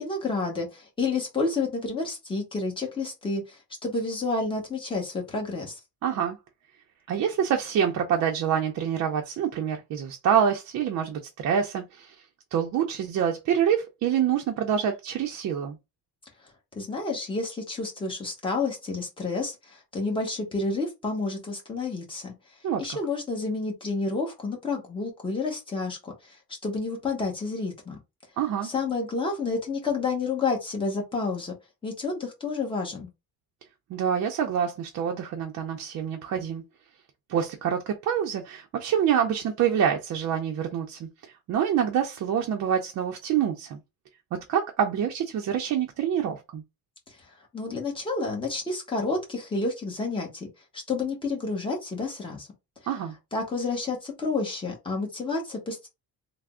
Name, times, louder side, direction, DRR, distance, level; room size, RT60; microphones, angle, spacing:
voice 1, 0.0-5.8 16.7-22.3 22.8-26.4 26.6-28.0 28.6-31.5 31.8-33.1 47.5-50.5 50.7-52.5 53.3-55.9, left 3 dB, 15° left, 0.9 m, -30 dB
voice 2, 6.0-6.4 7.1-12.2 12.5-15.8 22.6-22.9 28.4-28.7 33.9-36.6 37.3-41.1 41.5-43.8 44.5-46.6 52.9-53.1, right 8 dB, 50° right, 0.5 m, -26 dB
3.3 x 2.0 x 3.5 m
cardioid pair, 175°, 36 cm